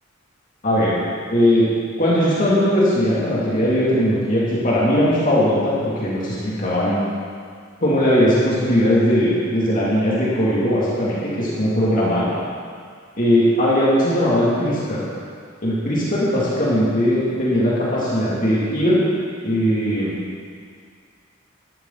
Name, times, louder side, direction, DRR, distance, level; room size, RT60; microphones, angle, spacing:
voice 1, 0.6-1.0 1.3-1.7 2.0-7.0 7.8-12.3 13.2-15.0 15.6-19.0 19.4-20.1, equal, 40° left, -8 dB, 2.8 m, -19 dB
12.5 x 12.0 x 4.1 m, 2.1 s
head